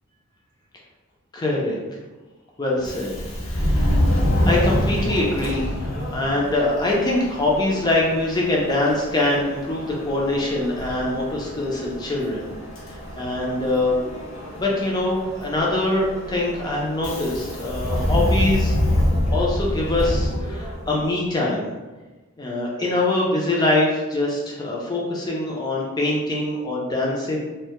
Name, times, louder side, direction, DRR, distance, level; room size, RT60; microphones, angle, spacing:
voice 1, 1.3-1.8 2.6-3.1 3.4-12.5 13.2-14.0 14.6-18.8 19.3-21.7 22.4-27.4, left 2 dB, 20° left, -3 dB, 0.4 m, -23 dB
Subway metro underground, 2.8-21.1, left 1 dB, 65° left, 0.6 m, -26 dB
2.1 x 2.1 x 2.8 m, 1.2 s
head